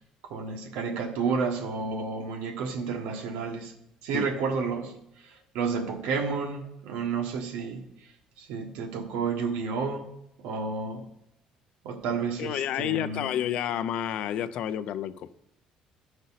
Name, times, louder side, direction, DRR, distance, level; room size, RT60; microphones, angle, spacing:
voice 1, 0.3-3.7 4.0-5.0 5.5-7.8 8.4-10.1 10.4-11.1 11.8-13.2, right 5 dB, 90° right, 4 dB, 1.4 m, -31 dB
voice 2, 12.4-15.3, left 10 dB, 50° left, 13 dB, 0.4 m, -30 dB
14.0 x 5.3 x 4.0 m, 0.79 s
cardioid pair, 175°, 2 cm